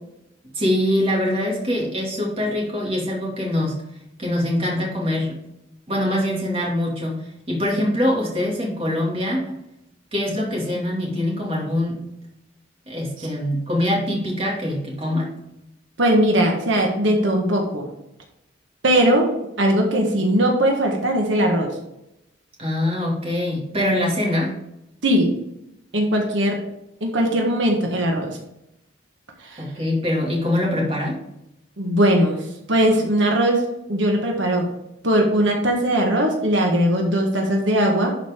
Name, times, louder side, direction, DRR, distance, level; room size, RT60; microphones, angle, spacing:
voice 1, 0.5-3.8 4.2-5.4 5.9-7.2 7.5-9.6 10.1-12.0 12.9-15.3 22.6-24.5 29.6-31.2, left 1 dB, 30° right, -3 dB, 2.3 m, -23 dB
voice 2, 16.0-17.9 18.8-19.3 19.6-21.7 25.0-25.3 25.9-26.6 27.0-28.3 29.4-29.6 31.8-32.4 32.7-33.6 33.9-34.6 35.0-38.1, right 1 dB, 80° right, 1 dB, 1.5 m, -19 dB
11.5 x 5.0 x 3.7 m, 0.85 s
head